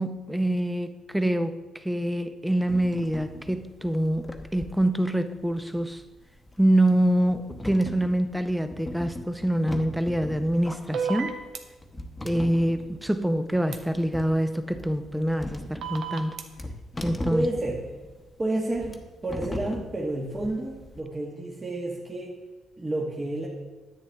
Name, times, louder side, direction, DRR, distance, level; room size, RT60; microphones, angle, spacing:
voice 1, 0.0-6.0 6.6-11.4 12.2-16.4 17.0-17.4, right 1 dB, 5° right, 9 dB, 0.6 m, -25 dB
sound 1, 2.7-21.0, left 1 dB, 15° left, 0.9 m, -40 dB
sound 2, 10.9-11.6 13.7-13.8 15.8-16.4, right 5 dB, 70° right, 0.9 m, -30 dB
voice 2, 17.3-17.9 18.4-22.4 22.8-23.5, right 1 dB, 25° right, -3 dB, 1.3 m, -30 dB
10.0 x 8.5 x 3.4 m, 1.2 s
cardioid pair, 90°, 0 cm